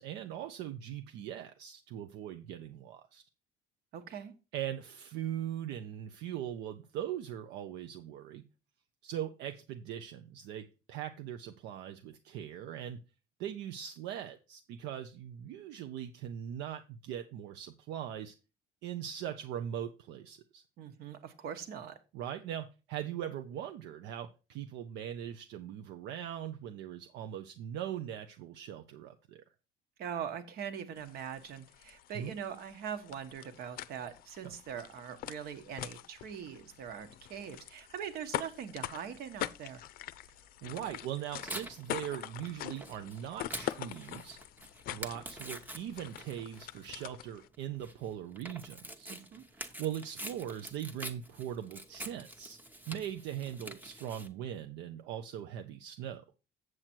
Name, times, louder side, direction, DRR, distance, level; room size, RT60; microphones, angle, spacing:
voice 1, 0.0-3.2 4.5-8.4 9.0-13.0 13.4-18.3 18.8-20.6 22.1-29.4 32.1-32.3 34.4-34.5 40.6-44.4 44.9-49.1 49.6-52.6 52.9-56.2, right 10 dB, 75° right, 7 dB, 0.8 m, -40 dB
voice 2, 3.9-4.3 20.8-22.0 30.0-39.8 49.1-49.4, right 8 dB, 60° right, 10 dB, 1.4 m, -42 dB
sound 1, 31.0-47.5, left 13 dB, 55° left, 0.5 m, -44 dB
Tearing, 40.7-54.3, right 1 dB, 10° right, 0.9 m, -46 dB
7.9 x 7.5 x 4.5 m, 0.30 s
cardioid pair, 170°, 18 cm